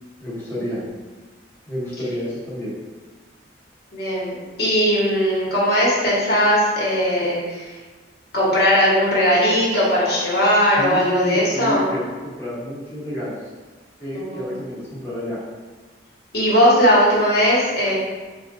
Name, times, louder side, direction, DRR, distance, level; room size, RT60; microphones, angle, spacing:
voice 1, 0.2-0.8 1.7-2.7 10.8-13.4 14.0-15.4, equal, 15° left, -10 dB, 1.1 m, -29 dB
voice 2, 3.9-7.7 8.3-11.8 14.1-14.5 16.3-17.9, equal, 55° left, -7 dB, 1.3 m, -18 dB
5.7 x 2.4 x 2.6 m, 1.3 s
head